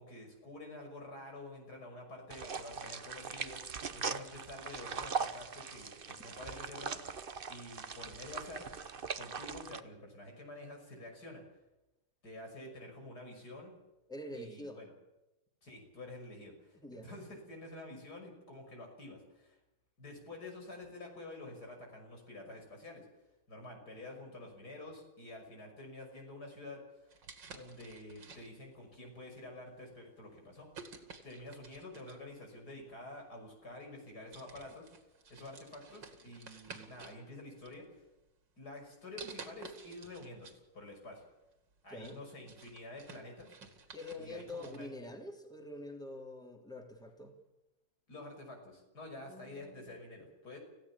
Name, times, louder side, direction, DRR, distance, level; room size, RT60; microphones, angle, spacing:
voice 1, 0.0-8.7 9.1-11.4 12.2-13.8 14.3-14.9 15.6-19.6 20.0-23.1 23.5-27.2 27.4-30.7 31.2-34.9 35.3-37.9 38.6-41.2 41.8-43.5 44.2-45.1 48.1-50.6, left 2 dB, 60° left, 2 dB, 6.6 m, -49 dB
sound 1, 2.3-9.8, right 5 dB, 40° right, 0.9 m, -41 dB
voice 2, 14.1-14.8 16.8-17.1 41.9-42.2 43.9-47.3 49.3-50.0, left 1 dB, ahead, 3 dB, 3.0 m, -46 dB
sound 2, 27.1-28.8 29.5-29.7 30.7-32.3 33.4-33.5 33.9-34.1 34.3-37.2 37.6-38.3 39.2-40.6 41.0-41.1 41.6-44.9, right 4 dB, 80° right, 3.0 m, -52 dB
26.5 x 16.0 x 7.2 m, 0.96 s
omnidirectional pair, 1.9 m